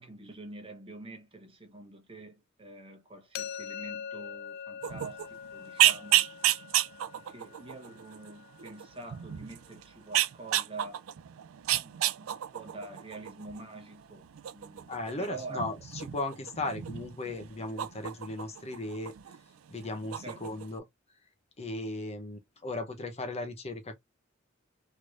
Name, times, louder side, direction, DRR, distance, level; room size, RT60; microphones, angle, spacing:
voice 1, 0.0-6.3 7.1-11.1 11.8-14.3 14.5-15.7 20.2-20.4, right 2 dB, 25° right, 1.1 m, -46 dB
sound 1, 3.3-9.2, left 8 dB, 50° left, 0.3 m, -44 dB
sound 2, 4.8-19.4 19.7-20.8, right 13 dB, 85° right, 0.4 m, -32 dB
voice 2, 14.9-19.4 19.7-20.9 21.6-23.9, left 2 dB, 30° left, 0.7 m, -37 dB
3.2 x 3.1 x 2.4 m
head